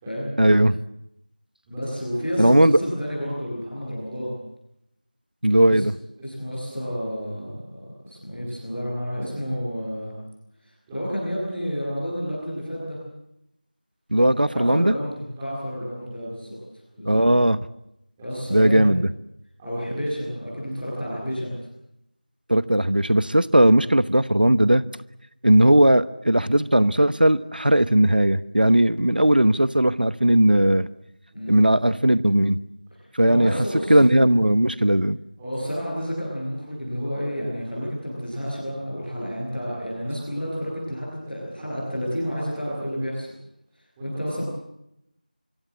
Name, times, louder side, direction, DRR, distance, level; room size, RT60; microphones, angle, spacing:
voice 1, 0.4-0.8 2.4-2.8 5.4-5.9 14.1-14.9 17.1-17.6 18.5-19.1 22.5-24.8 25.4-30.9 31.5-32.6 33.1-33.5 33.9-35.2, right 1 dB, 75° right, 15 dB, 1.1 m, -18 dB
voice 2, 1.6-4.3 5.6-5.8 6.2-7.8 8.0-10.1 10.6-12.9 14.5-17.2 18.2-18.9 19.6-21.5 31.3-31.6 33.2-34.0 35.4-43.2 44.0-44.4, equal, ahead, -14 dB, 3.0 m, -30 dB
25.0 x 24.5 x 8.5 m, 0.84 s
figure-of-eight pair, 180°, 5 cm